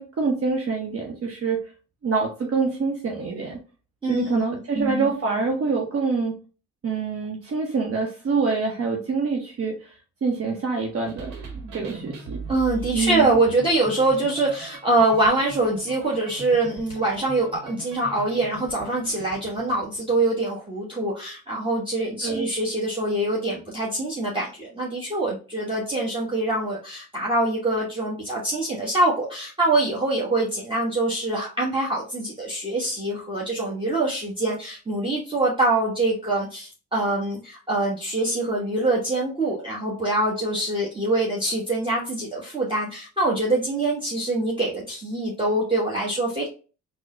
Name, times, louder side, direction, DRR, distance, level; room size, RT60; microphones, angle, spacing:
voice 1, 0.0-1.6 2.0-3.6 4.1-6.3 6.8-11.3 11.7-12.4 12.9-13.4 22.2-22.5, right 4 dB, 45° right, 0 dB, 0.8 m, -26 dB
voice 2, 4.0-4.4 4.7-5.1 12.5-46.5, right 2 dB, 15° right, -5 dB, 1.1 m, -24 dB
sound 1, 11.1-20.2, right 4 dB, 80° right, 1.0 m, -40 dB
3.7 x 2.1 x 3.6 m, 0.36 s
supercardioid pair, 65°, 33 cm